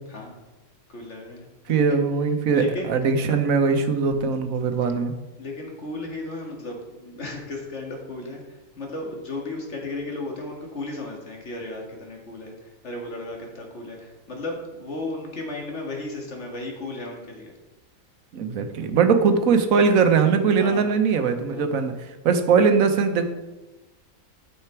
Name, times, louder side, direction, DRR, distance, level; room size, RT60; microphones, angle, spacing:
voice 1, 0.9-1.8 2.5-2.9 5.4-8.4 8.8-12.5 12.8-14.0 14.3-17.5 20.6-20.8 21.5-21.6, left 2 dB, 50° left, 1 dB, 2.0 m, -34 dB
voice 2, 1.7-5.1 18.3-23.2, right 5 dB, 70° right, 7 dB, 1.2 m, -21 dB
9.2 x 6.8 x 4.5 m, 1.1 s
omnidirectional pair, 1.5 m